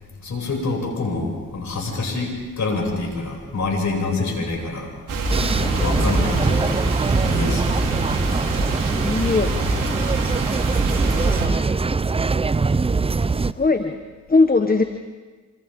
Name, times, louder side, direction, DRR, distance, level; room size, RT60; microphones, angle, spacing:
voice 1, 0.2-4.9 5.6-6.8 7.2-7.7, left 3 dB, 55° left, 0 dB, 7.4 m, -26 dB
sound 1, 5.1-11.5, right 2 dB, 65° right, 3.9 m, -25 dB
sound 2, 5.3-13.5, right 4 dB, 15° right, 0.6 m, -22 dB
voice 2, 8.9-9.5 13.3-14.0 14.3-14.8, left 3 dB, 25° left, 7 dB, 1.4 m, -19 dB
27.5 x 26.5 x 3.9 m, 1.4 s
hypercardioid pair, 50°, 34 cm